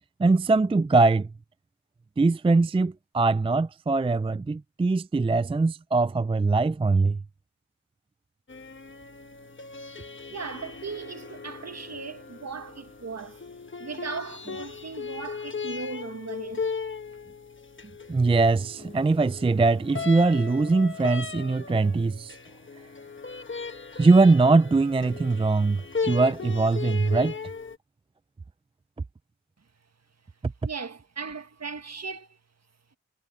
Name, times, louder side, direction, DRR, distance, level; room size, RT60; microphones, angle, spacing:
voice 1, 0.2-1.3 2.2-7.2 18.1-22.3 24.0-27.3, right 3 dB, 20° right, 0.4 m, -22 dB
sound 1, 8.5-27.8, left 5 dB, 40° left, 1.3 m, -37 dB
voice 2, 10.3-13.4 13.8-16.7 30.6-32.4, right 4 dB, 55° right, 1.7 m, -37 dB
cardioid pair, 60°, 30 cm